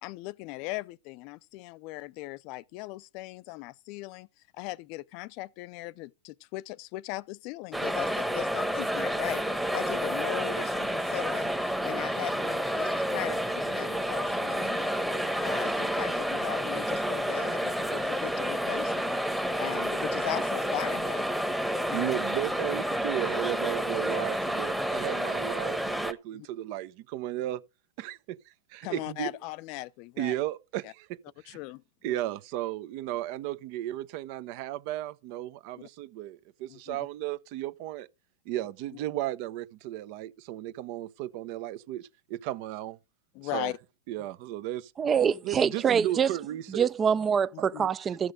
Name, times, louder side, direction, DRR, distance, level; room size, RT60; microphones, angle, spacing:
voice 1, 0.0-4.3 4.5-9.4 9.7-15.0 15.4-19.1 19.6-21.3 21.9-22.1 26.3-26.5 28.8-30.3 30.8-30.9 31.5-32.2 35.8-35.9 36.7-37.0 43.3-43.8 47.5-47.9, left 19 dB, 50° left, 0.5 m, -39 dB
sound 1, 7.7-26.1, equal, ahead, 1.1 m, -30 dB
voice 2, 21.9-27.6 28.0-29.3 30.2-31.2 31.4-31.6 32.0-38.1 38.5-43.0 43.4-43.7 44.1-44.9 45.4-46.9 47.6-47.7, right 14 dB, 50° right, 0.8 m, -34 dB
voice 3, 45.0-46.3 46.7-48.3, right 7 dB, 25° right, 0.5 m, -25 dB
14.0 x 6.3 x 5.1 m
hypercardioid pair, 120°, 0 cm